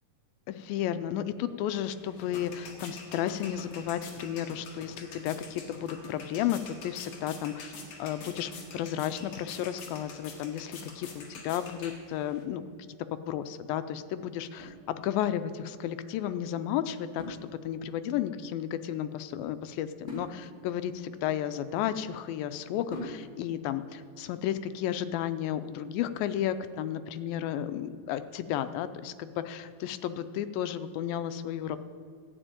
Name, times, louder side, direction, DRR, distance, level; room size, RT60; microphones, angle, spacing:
voice 1, 0.5-7.7 8.0-12.6 13.3-17.4 17.6-20.9 21.2-31.8, left 10 dB, 85° left, 12 dB, 2.4 m, -33 dB
sound 1, 1.7-12.4, left 3 dB, 60° left, 2.8 m, -46 dB
sound 2, 14.6-15.5 17.2-18.1 20.1-22.1 22.9-23.6, left 1 dB, 15° left, 2.8 m, -45 dB
13.5 x 5.1 x 8.9 m, 2.4 s
omnidirectional pair, 4.1 m